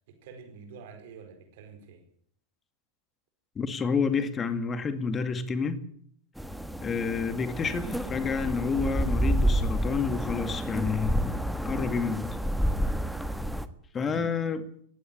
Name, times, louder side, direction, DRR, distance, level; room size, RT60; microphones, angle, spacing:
voice 1, 0.1-2.0 14.0-14.3, right 5 dB, 50° right, 5 dB, 4.9 m, -47 dB
voice 2, 3.6-5.8 6.8-12.3 13.9-14.7, left 5 dB, 20° left, 11 dB, 2.2 m, -29 dB
sound 1, 6.4-13.7, equal, ahead, 1.5 m, -29 dB
19.5 x 16.5 x 8.7 m, 0.63 s
figure-of-eight pair, 90°, 0 cm